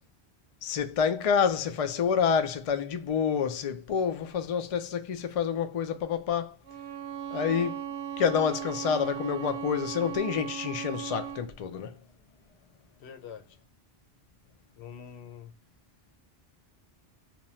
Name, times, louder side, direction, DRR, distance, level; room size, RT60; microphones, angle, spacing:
voice 1, 0.6-6.5 7.3-7.8 8.2-12.0, left 7 dB, 55° left, 0.4 m, -28 dB
Bowed string instrument, 6.7-11.5, right 9 dB, 85° right, 0.9 m, -37 dB
voice 2, 13.0-13.4 14.8-15.5, left 8 dB, 85° left, 0.9 m, -44 dB
2.9 x 2.2 x 4.1 m
omnidirectional pair, 1.1 m